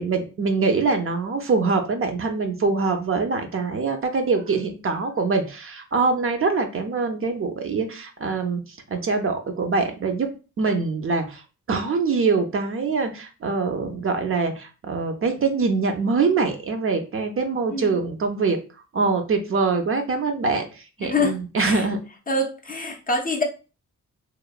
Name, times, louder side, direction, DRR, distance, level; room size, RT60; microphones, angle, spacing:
voice 1, 0.0-8.6 8.9-10.3 10.6-11.4 11.7-18.6 18.9-22.0, right 4 dB, 45° right, 5 dB, 0.5 m, -24 dB
voice 2, 21.0-21.8 22.3-23.4, left 2 dB, 30° left, 2 dB, 0.4 m, -25 dB
3.0 x 2.0 x 2.3 m, 0.33 s
cardioid pair, 100°, 31 cm